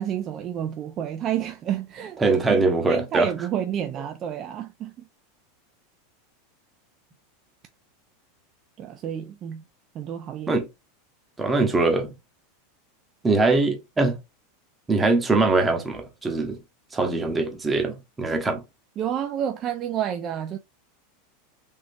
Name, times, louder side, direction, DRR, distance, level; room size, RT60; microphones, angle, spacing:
voice 1, 0.0-2.2 2.5-2.6 2.9-4.9 8.8-9.6 9.9-10.5 19.0-20.6, right 10 dB, 35° right, 0.4 m, -29 dB
voice 2, 2.2-3.3 10.5-10.7 11.4-12.1 13.2-14.2 14.9-16.6 16.9-18.6, right 3 dB, 15° right, 0.9 m, -22 dB
3.5 x 2.8 x 2.6 m
supercardioid pair, 120°, 0 cm